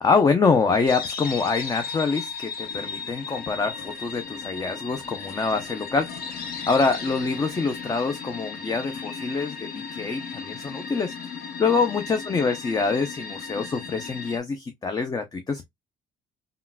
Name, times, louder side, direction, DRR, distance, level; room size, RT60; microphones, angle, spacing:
voice 1, 0.0-15.7, left 4 dB, 20° left, 0.5 m, -25 dB
sound 1, 0.9-14.4, left 5 dB, 65° left, 0.8 m, -36 dB
3.7 x 2.2 x 2.2 m
cardioid pair, 110°, 17 cm